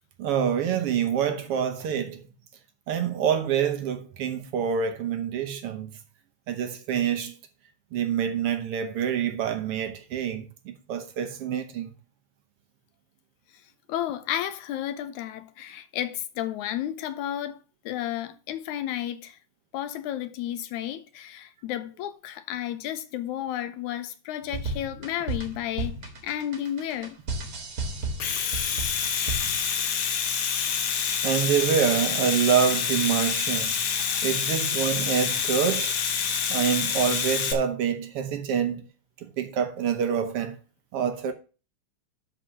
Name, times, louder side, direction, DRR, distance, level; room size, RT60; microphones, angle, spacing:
voice 1, 0.2-2.2 2.9-5.9 6.5-7.3 7.9-11.9 31.2-33.7 34.2-36.0 36.5-38.8 39.2-40.6 40.9-41.3, right 8 dB, 70° right, 1.4 m, -26 dB
voice 2, 13.9-17.6 17.9-19.4 19.7-26.0 26.2-27.2 34.1-34.2, left 11 dB, 75° left, 2.0 m, -32 dB
sound 1, 24.4-29.7, right 2 dB, 40° right, 1.5 m, -33 dB
Domestic sounds home sounds, 28.0-37.5, left 7 dB, 60° left, 1.5 m, -27 dB
11.5 x 4.0 x 6.2 m
omnidirectional pair, 3.6 m